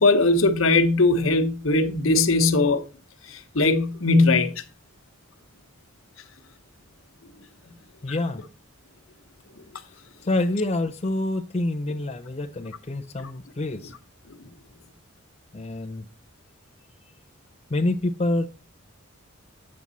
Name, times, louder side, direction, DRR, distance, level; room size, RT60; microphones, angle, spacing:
voice 1, 0.0-2.8 3.3-4.5, left 3 dB, 70° left, 1.1 m, -20 dB
voice 2, 8.0-8.4 10.2-13.9 15.5-16.1 17.7-18.5, left 2 dB, 30° left, 0.5 m, -27 dB
8.7 x 7.3 x 4.0 m
head